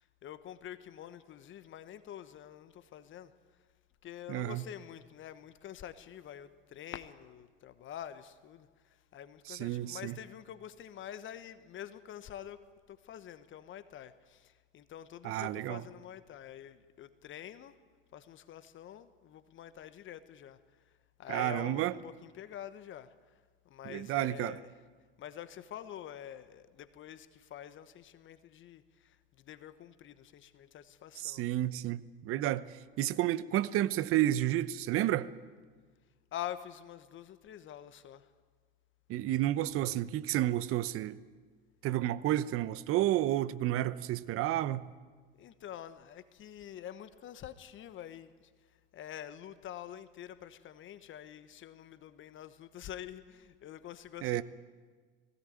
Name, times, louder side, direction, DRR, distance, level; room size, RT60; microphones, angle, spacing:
voice 1, 0.0-3.3 4.0-17.8 18.1-20.6 21.2-23.3 23.6-24.7 25.2-31.5 36.3-38.3 45.4-48.5 48.9-54.4, left 10 dB, 40° left, 1.2 m, -47 dB
voice 2, 4.3-4.6 9.5-10.1 15.2-15.8 21.3-21.9 23.8-24.6 31.2-35.3 39.1-41.2 41.8-44.9 54.2-54.4, right 14 dB, 45° right, 0.9 m, -31 dB
19.5 x 17.0 x 9.4 m
hypercardioid pair, 80°, 30 cm